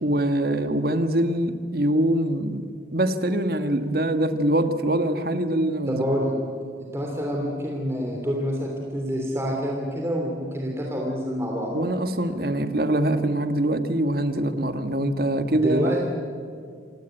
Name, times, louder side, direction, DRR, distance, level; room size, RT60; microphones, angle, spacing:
voice 1, 0.0-2.6 2.9-6.0 11.7-16.0, right 1 dB, 55° right, 9 dB, 1.5 m, -24 dB
voice 2, 5.9-6.3 6.8-11.7 15.5-16.0, equal, 15° right, -1 dB, 3.1 m, -27 dB
27.0 x 18.0 x 9.1 m, 2.3 s
head